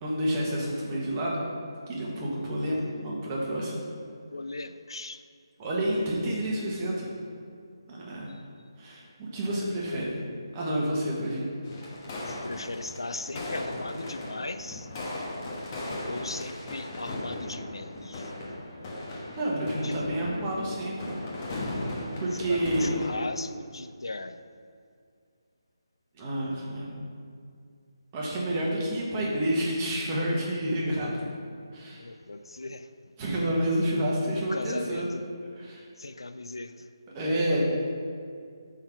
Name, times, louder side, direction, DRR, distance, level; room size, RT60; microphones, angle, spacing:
voice 1, 0.0-1.4 1.9-3.8 5.6-7.1 7.9-8.3 8.8-10.2 10.5-11.4 19.4-21.1 22.2-23.0 26.1-27.0 28.1-31.3 31.7-32.0 33.2-35.1 35.6-35.8 37.1-37.6, right 1 dB, 20° right, -4 dB, 1.3 m, -29 dB
voice 2, 4.3-5.2 8.3-8.4 9.5-9.6 9.9-10.1 12.3-14.9 16.0-18.3 19.8-20.0 22.3-24.4 31.9-32.9 34.4-35.3 36.0-36.9, left 2 dB, 80° left, 10 dB, 0.3 m, -38 dB
sound 1, 11.6-23.3, left 1 dB, 30° left, 1.1 m, -37 dB
7.3 x 3.8 x 4.5 m, 2.3 s
figure-of-eight pair, 150°, 3 cm